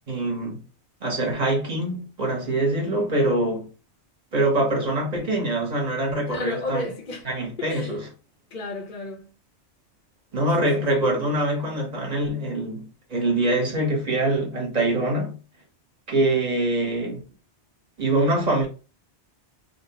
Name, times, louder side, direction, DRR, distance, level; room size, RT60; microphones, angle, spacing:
voice 1, 0.1-0.6 1.0-3.7 4.3-6.9 7.3-8.0 10.3-15.4 16.1-17.2 18.0-18.7, right 2 dB, 40° right, 1.1 m, -24 dB
voice 2, 6.3-7.3 7.6-8.0 8.5-9.3 10.6-10.9, left 2 dB, 50° left, 0.7 m, -32 dB
2.8 x 2.1 x 2.8 m
omnidirectional pair, 1.1 m